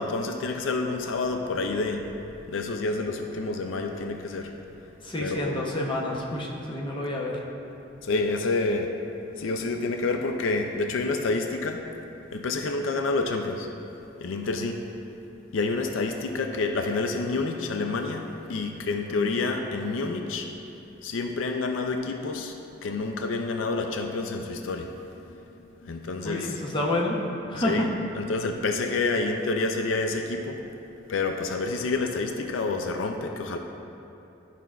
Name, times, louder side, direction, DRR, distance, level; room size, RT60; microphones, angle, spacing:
voice 1, 0.0-2.0 2.5-4.5 5.2-5.6 8.0-8.9 9.4-11.8 12.3-13.7 14.2-14.8 15.5-20.5 21.0-24.9 25.3-25.4 25.8-26.5 27.6-30.6 31.1-33.6, left 3 dB, 75° left, 4 dB, 0.4 m, -28 dB
voice 2, 5.0-7.4 19.1-19.2 26.2-27.2 27.5-27.9, left 1 dB, 25° left, -3 dB, 0.8 m, -29 dB
11.0 x 5.7 x 2.4 m, 2.8 s
head